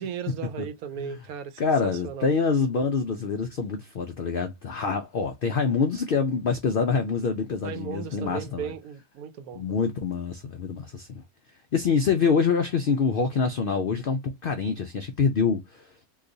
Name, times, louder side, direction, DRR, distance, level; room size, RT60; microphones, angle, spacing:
voice 1, 0.0-2.3 7.6-9.8, right 8 dB, 80° right, 1.1 m, -36 dB
voice 2, 1.6-8.7 9.5-11.2 11.7-16.1, left 5 dB, 90° left, 0.4 m, -26 dB
2.9 x 2.3 x 3.8 m
omnidirectional pair, 1.5 m